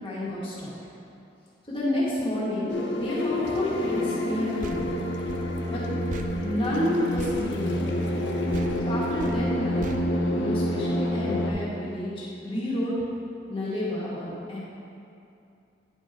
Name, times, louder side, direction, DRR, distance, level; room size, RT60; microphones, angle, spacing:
voice 1, 0.0-0.7 1.6-4.9 5.7-5.8 6.3-7.9 8.9-9.8 10.3-12.9 13.5-14.6, left 1 dB, 30° left, -8 dB, 1.9 m, -30 dB
sound 1, 2.7-11.5, left 1 dB, 90° left, 0.7 m, -28 dB
sound 2, 4.6-8.2 8.5-11.0, right 3 dB, 45° right, 0.3 m, -41 dB
10.0 x 5.2 x 3.7 m, 2.6 s
head